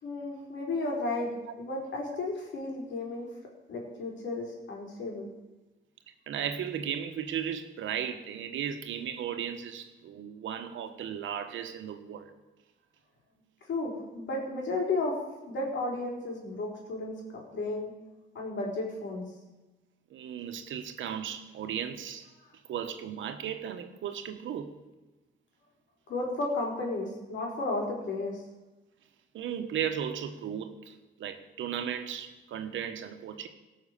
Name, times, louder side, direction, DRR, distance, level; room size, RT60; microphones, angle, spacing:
voice 1, 0.0-1.3 1.6-3.3 3.7-5.3 13.7-15.2 15.5-17.9 18.3-19.3 26.1-28.4, left 2 dB, 65° left, -1 dB, 4.4 m, -33 dB
voice 2, 6.3-12.3 20.1-22.3 22.7-24.8 29.3-33.5, right 9 dB, 75° right, 7 dB, 1.4 m, -36 dB
18.0 x 6.5 x 6.7 m, 1.1 s
cardioid pair, 90°, 20 cm